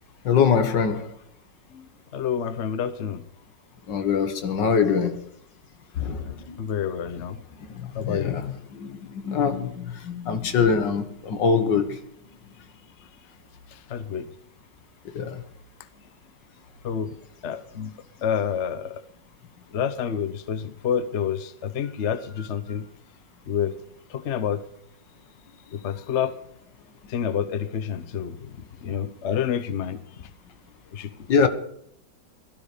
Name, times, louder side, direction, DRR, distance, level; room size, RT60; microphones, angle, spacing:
voice 1, 0.3-1.1 3.9-5.2 6.0-6.6 7.8-8.5 8.8-12.0 15.2-15.4 31.3-31.5, left 6 dB, 80° left, 2.1 m, -23 dB
voice 2, 2.1-3.2 6.6-7.4 7.9-8.4 13.7-14.3 16.8-17.1 17.4-17.9 18.2-19.0 19.7-22.9 23.5-23.7 24.1-24.6 25.7-26.3 27.1-28.5 28.8-30.0 30.9-31.1, left 8 dB, 45° left, 1.1 m, -28 dB
17.0 x 12.5 x 5.1 m
omnidirectional pair, 1.9 m